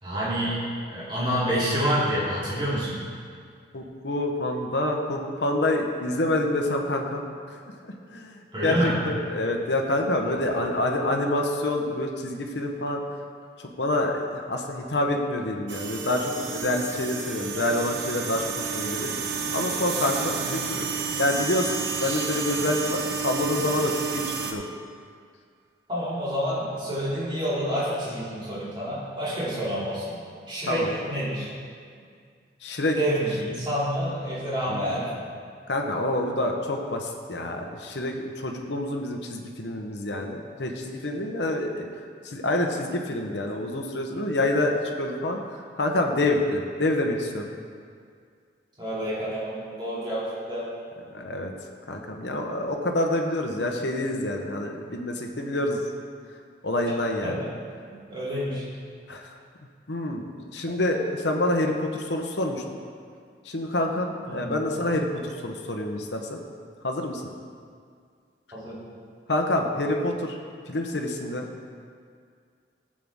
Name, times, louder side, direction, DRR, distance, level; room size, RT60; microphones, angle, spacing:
voice 1, 0.0-3.0 8.5-9.0 20.3-20.5 25.9-30.2 30.5-31.5 32.9-35.3 48.8-50.7 57.2-57.5 57.9-58.7 64.3-64.6 68.5-68.8, equal, 25° right, -9 dB, 3.0 m, -28 dB
voice 2, 3.7-7.2 7.8-13.0 13.8-19.2 19.5-20.9 21.2-24.6 30.7-30.9 32.6-33.0 34.7-34.9 35.7-41.9 42.2-45.4 45.8-47.4 51.1-51.5 51.9-55.8 56.6-57.4 59.1-59.3 59.9-62.6 63.5-66.4 66.8-67.2 69.3-70.3 70.7-71.5, left 1 dB, 75° left, 2 dB, 1.0 m, -27 dB
sound 1, 15.7-24.5, right 6 dB, 80° right, 0.9 m, -31 dB
14.5 x 7.6 x 3.6 m, 2.1 s
head